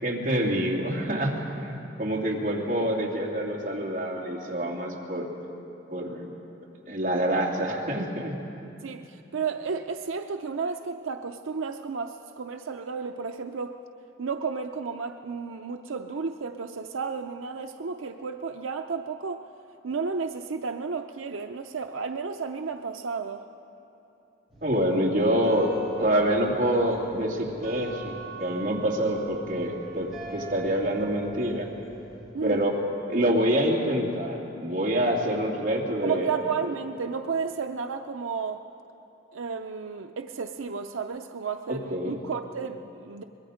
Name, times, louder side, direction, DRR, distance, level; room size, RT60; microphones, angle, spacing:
voice 1, 0.0-5.3 5.9-6.3 6.9-8.3 24.6-25.7 26.0-31.7 32.4-32.8 33.1-36.4 41.7-42.2, right 1 dB, 40° right, -3 dB, 2.7 m, -26 dB
voice 2, 8.8-13.8 14.2-19.4 19.8-23.4 32.3-32.6 36.0-38.7 39.3-43.2, right 5 dB, 90° right, 6 dB, 0.6 m, -32 dB
sound 1, 24.5-32.3, right 4 dB, ahead, 4.6 m, -43 dB
24.0 x 21.0 x 5.1 m, 2.9 s
head